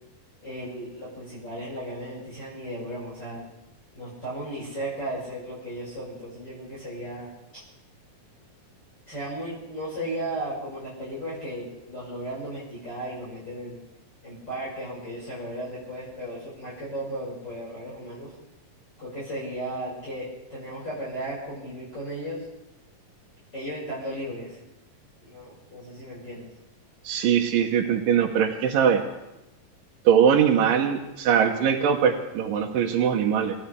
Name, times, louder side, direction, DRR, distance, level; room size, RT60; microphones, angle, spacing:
voice 1, 0.4-3.4 3.9-7.3 7.5-7.6 9.1-13.8 14.2-18.3 19.0-22.5 23.5-24.6 25.2-26.5, right 1 dB, 30° left, -8 dB, 6.1 m, -35 dB
voice 2, 27.0-29.0 30.1-33.5, right 8 dB, 85° right, 1 dB, 2.7 m, -21 dB
27.5 x 14.5 x 3.4 m, 0.93 s
omnidirectional pair, 3.8 m